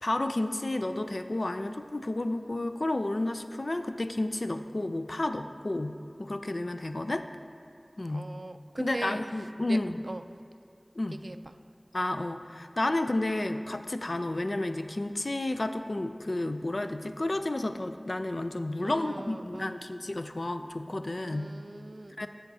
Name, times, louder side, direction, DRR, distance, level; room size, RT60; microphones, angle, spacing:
voice 1, 0.0-7.3 8.0-8.3 8.8-10.0 11.0-11.2 11.9-21.5 22.2-22.3, left 2 dB, 75° left, 8 dB, 0.4 m, -31 dB
voice 2, 8.1-9.2 9.6-9.8 10.1-10.2 11.2-11.4 18.8-19.8 21.2-22.3, right 2 dB, 75° right, 9 dB, 0.3 m, -40 dB
15.5 x 5.7 x 2.7 m, 2.3 s
wide cardioid pair, 40°, 0 cm